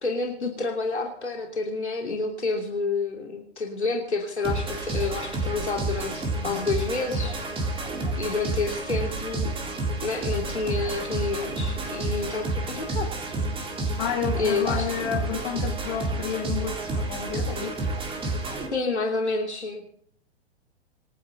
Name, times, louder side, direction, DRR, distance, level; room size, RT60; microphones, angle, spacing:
voice 1, 0.0-7.4 8.2-9.5 10.0-13.1 14.3-14.9 18.7-19.8, left 3 dB, 85° left, 0 dB, 3.1 m, -29 dB
sound 1, 4.4-18.7, right 2 dB, 15° right, 3.7 m, -30 dB
voice 2, 14.0-17.7, left 7 dB, 45° left, 1 dB, 6.4 m, -30 dB
26.0 x 10.5 x 3.9 m, 0.64 s
figure-of-eight pair, 110°, 33 cm